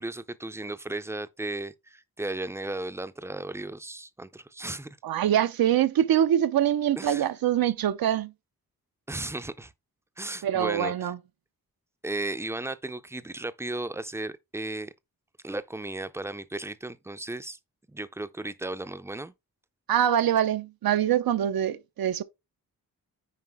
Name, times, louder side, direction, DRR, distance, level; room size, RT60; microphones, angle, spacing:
voice 1, 0.0-4.9 7.0-7.3 9.1-9.7 10.2-11.1 12.0-14.9 15.4-17.6 17.9-19.3, right 2 dB, 10° right, 0.4 m, -35 dB
voice 2, 5.0-8.3 10.4-11.2 19.9-22.2, right 10 dB, 90° right, 0.7 m, -24 dB
9.6 x 4.8 x 3.5 m
wide cardioid pair, 165°, 35 cm